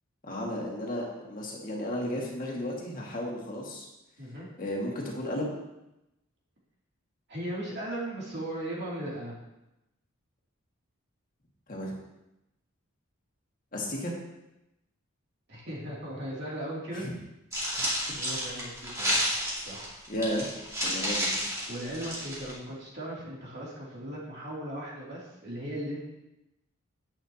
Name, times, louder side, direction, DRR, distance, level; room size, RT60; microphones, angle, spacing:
voice 1, 0.2-3.9 4.6-5.6 11.7-11.9 13.7-14.1 17.0-17.1 20.1-20.5 20.8-21.4, left 1 dB, 40° left, -2 dB, 2.0 m, -33 dB
voice 2, 4.2-4.5 7.3-9.4 15.5-17.1 18.1-19.2 19.6-20.0 21.7-26.1, right 1 dB, 50° right, -5 dB, 2.9 m, -37 dB
sound 1, 17.5-22.5, equal, 15° right, 2.3 m, -31 dB
10.5 x 9.0 x 2.9 m, 0.92 s
head